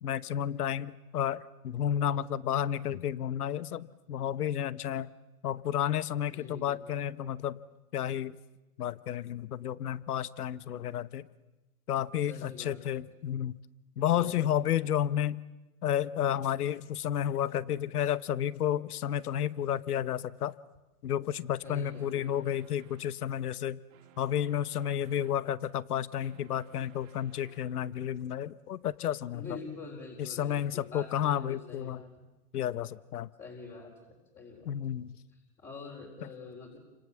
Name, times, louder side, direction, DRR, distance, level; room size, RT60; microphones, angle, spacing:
voice 1, 0.0-5.1 5.4-7.6 7.9-8.3 8.8-11.2 11.9-13.6 14.0-15.4 15.8-20.5 21.0-23.8 24.2-29.5 30.2-32.0 32.5-33.3 34.6-35.2, left 10 dB, 75° left, 18 dB, 1.1 m, -31 dB
voice 2, 6.3-6.8 12.3-13.0 14.1-14.6 21.6-22.4 29.3-32.1 33.4-34.7 35.3-36.8, left 4 dB, 20° left, -2 dB, 4.6 m, -46 dB
sound 1, 21.6-23.2 23.9-25.4 26.0-27.8, right 10 dB, 60° right, 3.0 m, -60 dB
29.5 x 26.5 x 7.2 m, 1.1 s
hypercardioid pair, 135°, 46 cm